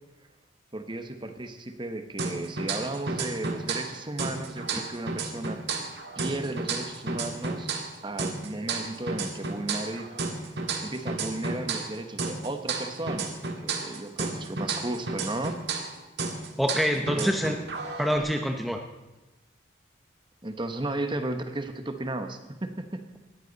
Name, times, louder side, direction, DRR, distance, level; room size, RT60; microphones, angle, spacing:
voice 1, 0.7-5.6 6.1-7.7 8.0-10.1 10.8-13.3 13.6-15.6 16.9-17.4 20.4-23.0, right 2 dB, 25° right, 7 dB, 1.1 m, -34 dB
sound 1, 2.2-3.9 4.2-7.9 8.2-11.9 12.2-15.9 16.2-18.2, right 4 dB, 60° right, 1.9 m, -32 dB
voice 2, 16.6-17.5 18.0-18.8, equal, ahead, 3 dB, 0.8 m, -26 dB
19.5 x 14.0 x 4.0 m, 1.1 s
head